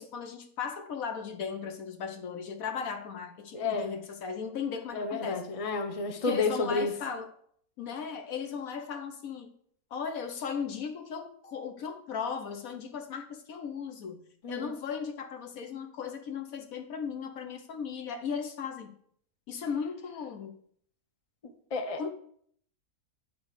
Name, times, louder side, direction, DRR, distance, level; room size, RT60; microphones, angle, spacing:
voice 1, 0.0-5.4 6.3-7.3 7.8-9.5 9.9-14.2 14.5-18.9 19.5-20.5 22.0-22.1, left 6 dB, 65° left, 6 dB, 1.3 m, -36 dB
voice 2, 3.5-3.9 4.9-6.9 14.4-14.7 21.7-22.0, left 3 dB, 30° left, 5 dB, 0.8 m, -31 dB
9.3 x 4.1 x 6.6 m, 0.64 s
omnidirectional pair, 1.6 m